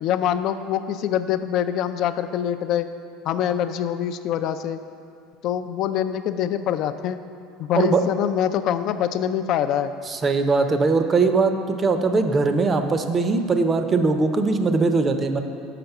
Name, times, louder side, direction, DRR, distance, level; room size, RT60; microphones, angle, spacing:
voice 1, 0.0-2.9 3.2-4.8 5.4-7.2 7.6-9.9, left 10 dB, 55° left, 10 dB, 0.4 m, -24 dB
voice 2, 10.1-15.4, right 4 dB, 25° right, 7 dB, 0.6 m, -20 dB
5.9 x 5.2 x 6.6 m, 2.4 s
supercardioid pair, 105°, 0 cm